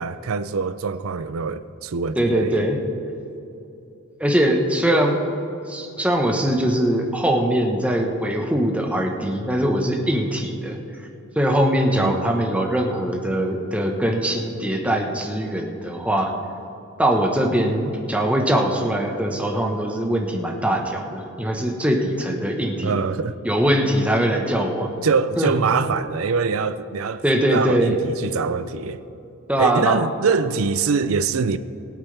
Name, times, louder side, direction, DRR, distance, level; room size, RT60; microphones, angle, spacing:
voice 1, 0.0-2.7 12.0-12.2 22.8-23.4 25.0-27.2 27.5-29.0 29.6-31.6, right 5 dB, 80° right, 0.5 m, -24 dB
voice 2, 2.2-2.8 4.2-5.2 5.6-10.8 11.4-16.3 17.0-23.0 23.4-24.9 25.4-25.5 27.2-28.0 29.5-30.0, right 1 dB, 5° right, 1.1 m, -21 dB
22.0 x 9.0 x 3.4 m
head